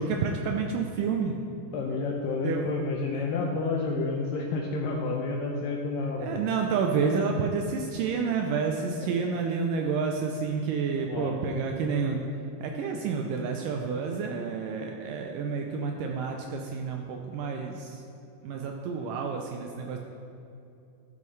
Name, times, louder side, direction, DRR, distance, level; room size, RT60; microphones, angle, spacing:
voice 1, 0.0-1.4 2.4-2.7 3.1-3.2 6.2-12.3 12.6-18.0 18.4-20.0, right 5 dB, 80° right, 2 dB, 2.0 m, -29 dB
voice 2, 1.7-6.4 11.1-11.3, left 3 dB, 80° left, -1 dB, 2.2 m, -30 dB
13.0 x 5.5 x 3.2 m, 2.6 s
omnidirectional pair, 4.2 m